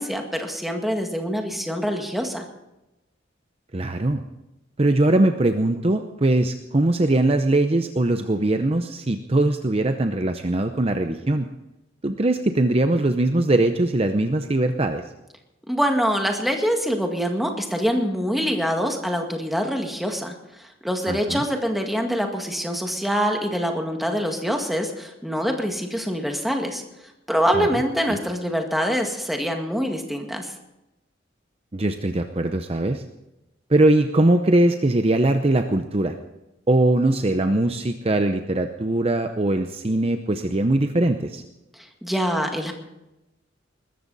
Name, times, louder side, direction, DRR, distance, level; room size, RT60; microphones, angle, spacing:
voice 1, 0.0-2.5 15.7-26.8 27.3-30.5 41.8-42.7, equal, ahead, 3 dB, 1.9 m, -25 dB
voice 2, 3.7-4.2 4.8-11.5 12.0-15.0 21.1-21.4 27.5-27.7 28.1-28.2 31.7-33.0 33.7-36.2 36.7-41.4, right 2 dB, 30° right, 7 dB, 0.7 m, -21 dB
20.5 x 14.0 x 4.1 m, 0.94 s
head